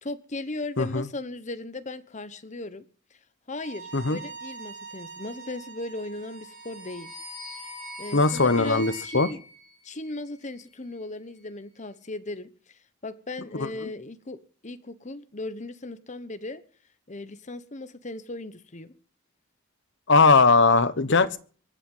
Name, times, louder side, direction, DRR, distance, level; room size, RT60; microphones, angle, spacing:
voice 1, 0.0-2.8 3.5-7.1 8.0-9.4 9.8-16.6 17.1-18.9 21.0-21.3, left 2 dB, 35° left, 1.1 m, -37 dB
Bowed string instrument, 3.5-9.1, right 5 dB, 60° right, 4.2 m, -44 dB
sound 1, 6.3-10.6, left 1 dB, ahead, 6.8 m, -43 dB
voice 2, 8.1-9.3 20.1-21.4, left 3 dB, 60° left, 1.2 m, -19 dB
23.5 x 9.0 x 5.6 m
head